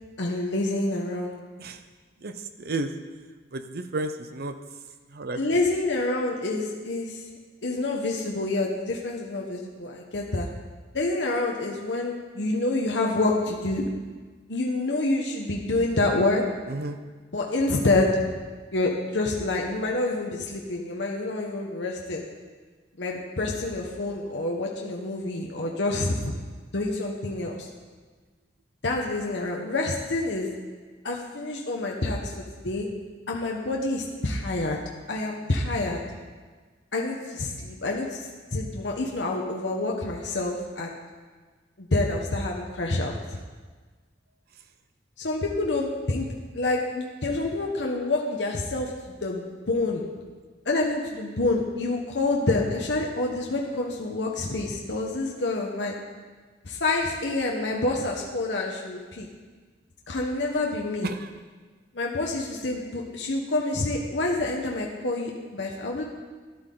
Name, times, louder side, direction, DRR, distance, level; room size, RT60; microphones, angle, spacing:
voice 1, 0.2-1.3 5.3-7.2 7.6-10.5 10.9-13.9 14.5-16.4 17.3-18.3 18.7-22.2 23.0-26.3 26.7-27.7 28.8-30.5 31.0-32.3 32.6-32.9 33.3-34.8 35.1-36.0 36.9-38.2 38.5-41.0 41.8-43.2 45.2-46.3 46.5-50.0 50.6-55.9 56.6-59.3 60.1-61.1 61.9-66.0, left 2 dB, 75° left, -1 dB, 1.1 m, -27 dB
voice 2, 2.6-2.9 3.5-4.5 5.1-5.4 16.7-17.0 61.0-61.3, right 2 dB, 60° right, 9 dB, 0.7 m, -31 dB
12.5 x 11.0 x 3.9 m, 1.4 s
head